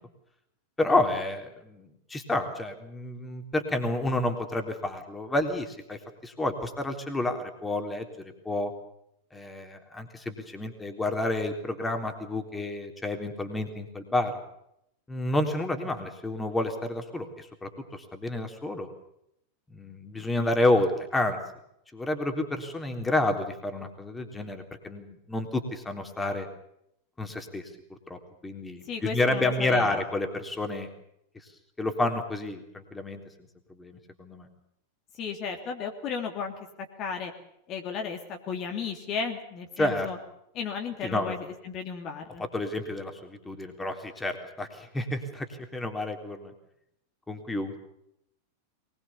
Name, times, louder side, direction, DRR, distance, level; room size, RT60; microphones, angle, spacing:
voice 1, 0.8-8.7 9.3-14.3 15.1-18.9 19.7-21.4 21.9-26.5 27.2-27.7 28.1-30.9 31.8-33.2 33.8-34.5 39.8-40.1 41.0-41.4 42.4-46.5 47.3-47.8, left 2 dB, 10° left, 5 dB, 3.6 m, -30 dB
voice 2, 28.9-30.0 35.1-36.5 37.0-37.3 37.7-40.2 40.5-42.4, left 6 dB, 35° left, 3 dB, 3.0 m, -34 dB
23.0 x 21.5 x 7.1 m, 0.77 s
figure-of-eight pair, 90°, 0 cm